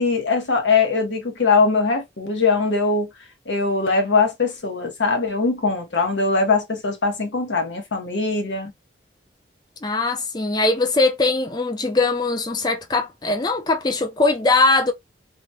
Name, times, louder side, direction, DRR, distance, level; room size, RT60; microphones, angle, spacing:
voice 1, 0.0-3.1 3.5-8.7, left 4 dB, 85° left, 1.0 m, -21 dB
voice 2, 9.8-14.9, left 3 dB, 20° left, 0.4 m, -21 dB
3.1 x 2.1 x 2.6 m
head